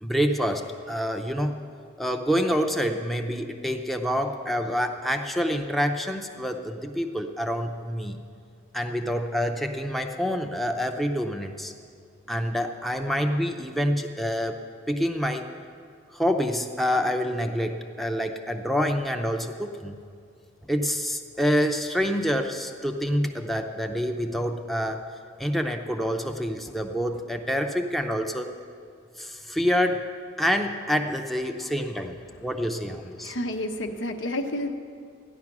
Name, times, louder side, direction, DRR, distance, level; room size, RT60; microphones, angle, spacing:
voice 1, 0.0-1.6 2.0-8.2 8.7-11.7 12.3-14.6 14.9-15.5 16.1-20.0 20.7-25.0 25.4-28.5 29.2-30.1 30.4-32.2 32.4-33.3, equal, ahead, 4 dB, 0.5 m, -27 dB
voice 2, 33.2-34.7, left 1 dB, 85° left, 5 dB, 1.0 m, -30 dB
14.5 x 10.5 x 6.0 m, 2.3 s
head